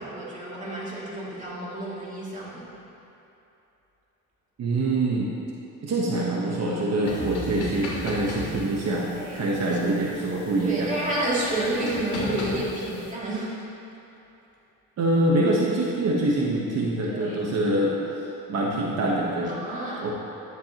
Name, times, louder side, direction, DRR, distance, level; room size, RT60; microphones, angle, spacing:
voice 1, 0.0-2.7 9.1-9.8 10.6-13.6 17.1-17.4 19.5-20.0, right 1 dB, 20° right, -7 dB, 2.5 m, -30 dB
voice 2, 4.6-5.3 5.8-9.1 9.3-11.0 15.0-17.9 18.5-19.6 20.0-20.1, right 2 dB, 45° right, -4 dB, 1.2 m, -25 dB
sound 1, 7.1-13.1, left 2 dB, 60° left, 2.6 m, -36 dB
14.0 x 11.0 x 3.0 m, 2.9 s
cardioid pair, 165°, 35 cm